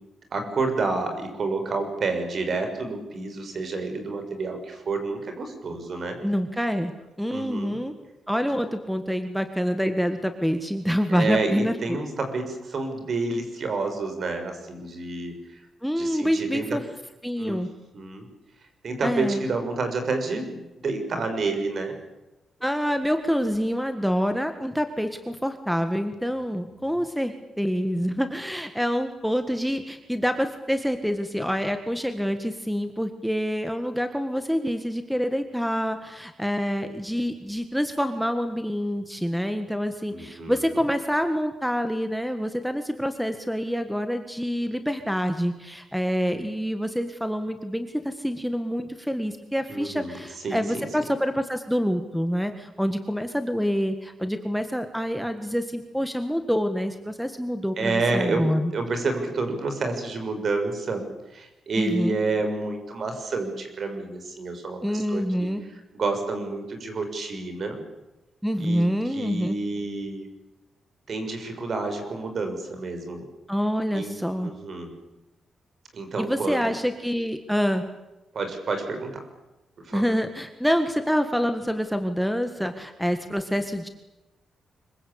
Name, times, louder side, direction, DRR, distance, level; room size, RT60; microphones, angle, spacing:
voice 1, 0.3-6.2 7.3-7.8 11.1-15.6 16.0-16.8 17.4-17.7 17.9-18.3 18.8-21.9 26.3-26.4 26.8-26.9 40.1-40.6 49.7-51.0 57.8-61.1 61.3-65.5 65.9-67.8 68.6-70.3 71.1-73.3 73.9-75.0 75.9-76.6 78.3-79.2 79.8-80.0, right 3 dB, 50° right, 6 dB, 6.3 m, -29 dB
voice 2, 6.2-6.9 7.2-7.9 8.3-12.0 15.8-16.8 17.2-17.7 19.0-19.4 22.6-58.7 61.7-62.2 64.8-65.6 68.4-69.6 73.5-74.5 76.2-77.8 79.9-83.9, equal, ahead, 8 dB, 1.7 m, -26 dB
25.5 x 23.5 x 8.7 m, 0.99 s
cardioid pair, 125°, 0 cm